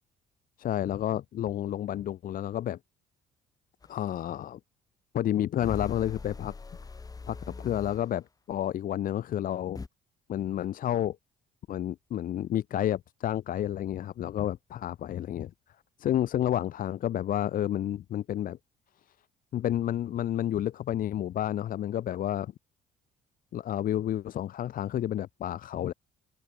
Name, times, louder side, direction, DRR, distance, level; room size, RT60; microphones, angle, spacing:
voice 1, 0.6-2.8 3.9-4.6 5.1-6.5 7.3-9.8 10.3-11.2 11.7-15.5 16.0-18.6 19.5-22.5 23.5-25.9, left 11 dB, 55° left, 1.1 m, -30 dB
sound 1, 3.8-3.9 5.6-8.1 9.7-9.9, left 4 dB, 20° left, 1.8 m, -41 dB
open air
cardioid pair, 110°, 17 cm